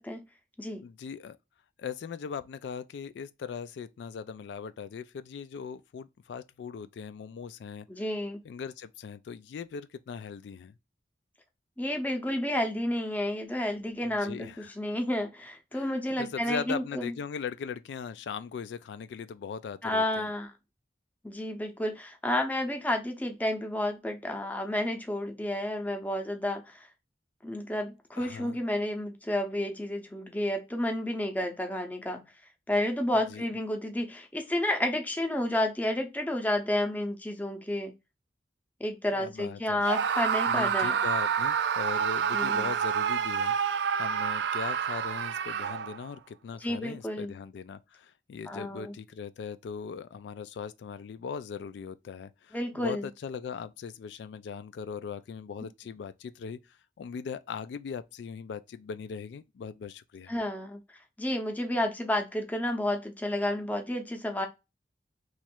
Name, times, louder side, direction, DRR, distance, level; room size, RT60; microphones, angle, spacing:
voice 1, 0.8-1.4 1.8-7.9 8.4-10.7 14.0-14.7 15.7-20.3 28.2-28.6 33.3-33.5 39.1-39.8 40.5-43.6 44.0-60.3, left 6 dB, 85° left, 0.3 m, -39 dB
voice 2, 7.9-8.4 11.8-17.1 19.8-20.5 21.2-26.9 27.4-32.2 32.7-37.9 38.8-41.0 42.3-42.7 46.6-47.3 48.5-48.9 52.5-53.1 60.3-60.8 61.2-64.5, left 1 dB, 10° left, 0.6 m, -31 dB
Screaming, 39.8-46.1, right 7 dB, 75° right, 0.4 m, -28 dB
3.0 x 2.4 x 4.3 m
head